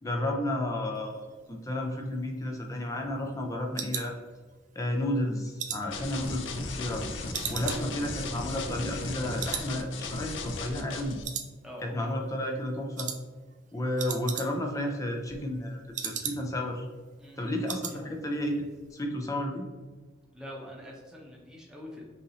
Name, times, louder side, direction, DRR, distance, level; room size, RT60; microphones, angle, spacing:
voice 1, 0.0-4.1 4.8-7.0 7.5-11.2 11.8-13.1 13.7-16.9 17.4-18.6 18.9-19.7, left 1 dB, 15° left, 1 dB, 0.5 m, -32 dB
sound 1, 2.1-4.8 5.2-7.0 7.3-9.1 9.4-9.7 10.0-10.1 10.6-11.0 11.2-12.0 12.3-12.6 13.0-13.2 13.5-13.6 13.8-14.8 15.1-16.7 17.0-17.1 17.4-18.0 18.3-18.6 18.8-18.9, right 8 dB, 40° right, 0.4 m, -38 dB
voice 2, 5.8-6.3 7.5-7.9 11.6-12.0 17.2-18.1 20.3-22.0, left 1 dB, 5° right, -3 dB, 0.8 m, -46 dB
sound 2, 5.9-11.2, left 3 dB, 85° left, 0.5 m, -36 dB
5.5 x 2.6 x 3.0 m, 1.4 s
head